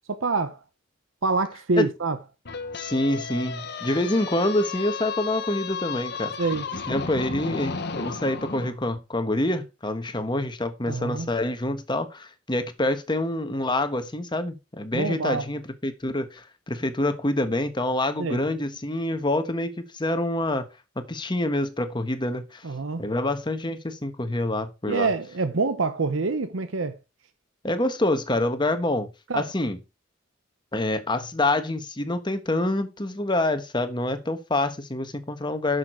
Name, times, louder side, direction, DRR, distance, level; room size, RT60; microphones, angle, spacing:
voice 1, 0.1-0.6 1.2-2.2 6.4-6.6 10.9-11.3 14.9-15.5 18.2-18.4 22.6-23.0 24.9-27.0 29.3-29.5, right 3 dB, 85° right, 0.8 m, -26 dB
sound 1, 2.4-8.7, left 5 dB, 55° left, 1.2 m, -33 dB
voice 2, 2.8-6.3 6.9-20.6 21.0-22.6 23.0-25.1 27.6-29.8 30.7-35.8, left 1 dB, 25° left, 1.3 m, -26 dB
11.0 x 6.7 x 4.5 m
head